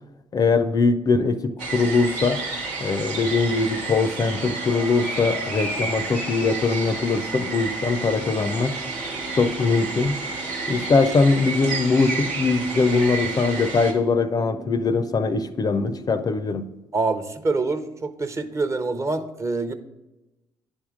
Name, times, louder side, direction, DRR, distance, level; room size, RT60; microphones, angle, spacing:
voice 1, 0.3-2.4 2.8-8.7 9.3-10.2 10.7-16.7, left 4 dB, 40° left, 11 dB, 0.5 m, -21 dB
sound 1, 1.6-13.9, right 3 dB, 90° right, 0.9 m, -31 dB
sound 2, 8.1-16.2, right 3 dB, 60° right, 0.8 m, -41 dB
voice 2, 16.9-19.7, right 3 dB, 30° right, 9 dB, 0.7 m, -25 dB
9.9 x 3.6 x 4.9 m, 1.0 s
hypercardioid pair, 50°, 10 cm